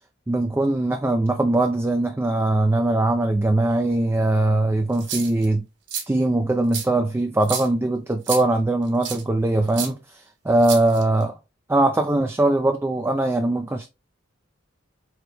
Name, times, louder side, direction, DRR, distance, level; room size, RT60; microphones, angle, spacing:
voice 1, 0.3-5.7 6.1-11.4 11.7-13.9, right 2 dB, 10° right, 0.3 m, -21 dB
sound 1, 4.9-5.5 5.9-6.0 6.7-6.8 7.4-7.7 8.2-8.4 9.0-9.2 9.7-9.9 10.6-11.2, right 7 dB, 65° right, 1.4 m, -30 dB
4.3 x 3.3 x 3.3 m
head